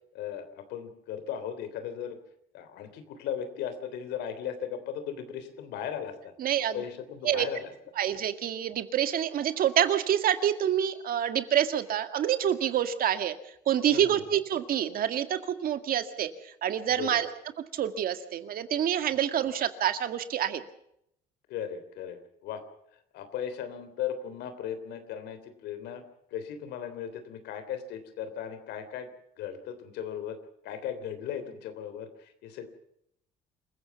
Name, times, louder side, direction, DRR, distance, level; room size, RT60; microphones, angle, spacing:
voice 1, 0.1-2.2 2.5-6.3 6.7-7.7 13.9-14.2 17.0-17.2 21.5-22.6 23.1-26.0 26.3-29.1 29.4-30.4 30.6-32.7, left 9 dB, 85° left, 10 dB, 3.2 m, -37 dB
voice 2, 6.4-6.8 7.2-7.5 8.0-13.3 13.7-16.3 16.6-17.3 17.7-20.6, right 10 dB, 60° right, 9 dB, 1.9 m, -27 dB
27.0 x 15.5 x 7.0 m, 0.74 s
cardioid pair, 110°, 17 cm